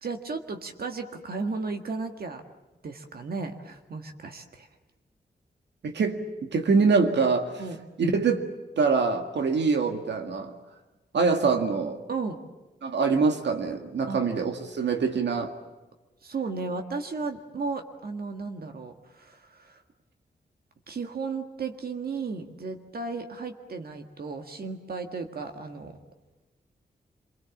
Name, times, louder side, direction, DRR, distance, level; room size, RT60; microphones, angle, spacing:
voice 1, 0.0-2.4 2.8-4.7 7.6-7.8 12.1-12.4 14.1-14.2 16.2-19.8 20.9-26.0, right 4 dB, 60° right, 5 dB, 1.8 m, -34 dB
voice 2, 5.8-7.5 8.0-8.4 8.8-10.5 11.1-12.0 12.8-15.5, right 4 dB, 90° right, 5 dB, 2.0 m, -24 dB
28.0 x 23.0 x 7.3 m, 1.2 s
wide cardioid pair, 150°, 17 cm